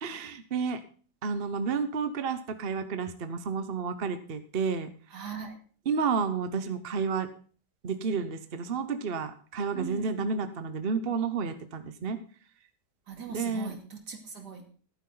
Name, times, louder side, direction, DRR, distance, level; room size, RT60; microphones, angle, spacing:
voice 1, 0.0-0.8 1.2-4.9 5.9-7.3 7.8-12.2 13.3-13.7, right 5 dB, 40° right, 9 dB, 1.0 m, -31 dB
voice 2, 5.1-5.6 9.7-10.2 13.1-14.6, right 6 dB, 70° right, 4 dB, 3.0 m, -40 dB
14.0 x 12.0 x 3.9 m, 0.42 s
omnidirectional pair, 1.9 m